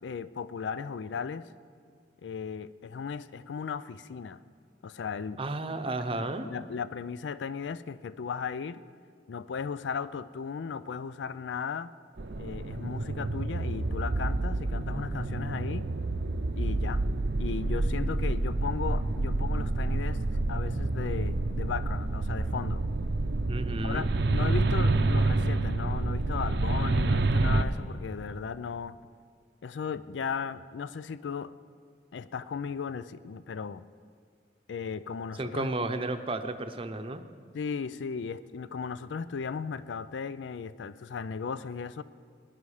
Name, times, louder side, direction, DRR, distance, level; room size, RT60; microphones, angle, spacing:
voice 1, 0.0-1.4 2.2-4.4 4.8-5.4 6.1-8.8 9.3-11.9 12.4-15.8 16.6-17.0 17.4-22.8 23.8-29.0 29.6-31.5 32.1-33.8 34.7-35.9 37.5-42.0, left 6 dB, 90° left, 16 dB, 0.4 m, -36 dB
voice 2, 5.4-6.5 23.4-24.1 35.4-37.2, right 2 dB, 30° right, 8 dB, 0.7 m, -33 dB
sound 1, 12.2-27.6, right 2 dB, 65° right, 0.6 m, -28 dB
18.5 x 10.5 x 4.9 m, 2.1 s
head